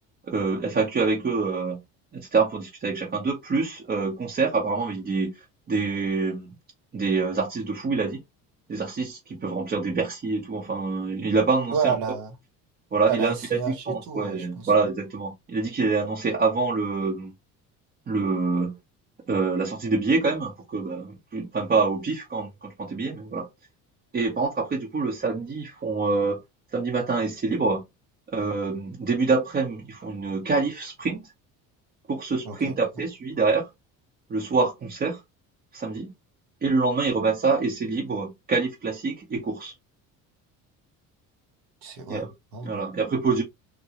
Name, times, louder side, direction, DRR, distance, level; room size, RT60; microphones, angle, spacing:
voice 1, 0.2-1.8 2.1-5.4 5.7-6.5 6.9-8.2 8.7-12.0 12.9-13.3 13.9-17.3 18.1-18.8 19.3-23.5 24.1-26.4 26.7-27.8 28.3-31.3 32.1-33.7 34.3-35.2 35.7-36.1 36.6-39.7 42.1-42.3 42.6-43.4, right 4 dB, 25° right, 0.8 m, -26 dB
voice 2, 11.7-12.3 13.1-14.7 32.4-32.8 41.8-42.8, right 6 dB, 80° right, 1.4 m, -30 dB
3.7 x 2.2 x 2.9 m
cardioid pair, 135°, 35 cm